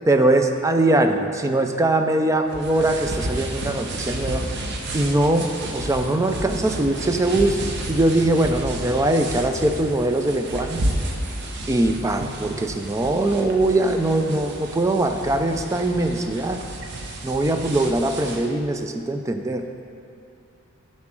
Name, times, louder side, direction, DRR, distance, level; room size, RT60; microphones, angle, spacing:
voice 1, 0.1-4.4 4.9-7.6 7.9-10.8 11.7-16.6 17.2-19.8, right 2 dB, 15° right, 6 dB, 0.3 m, -21 dB
sound 1, 2.5-18.5, right 1 dB, 50° right, 0.8 m, -31 dB
9.6 x 4.2 x 6.1 m, 2.5 s
head